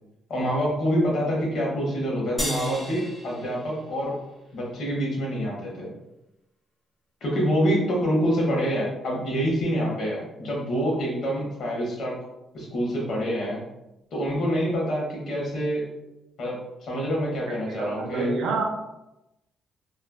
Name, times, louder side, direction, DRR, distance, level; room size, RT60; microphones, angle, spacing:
voice 1, 0.3-4.1 4.5-5.9 7.2-12.2 12.5-13.6 14.1-15.9 16.4-18.3, equal, 65° left, -3 dB, 1.0 m, -26 dB
sound 1, 2.4-5.0, equal, 10° left, 0.9 m, -36 dB
voice 2, 17.5-18.6, right 3 dB, 85° right, 1 dB, 0.5 m, -28 dB
3.0 x 2.3 x 2.2 m, 0.92 s
cardioid pair, 90°, 0 cm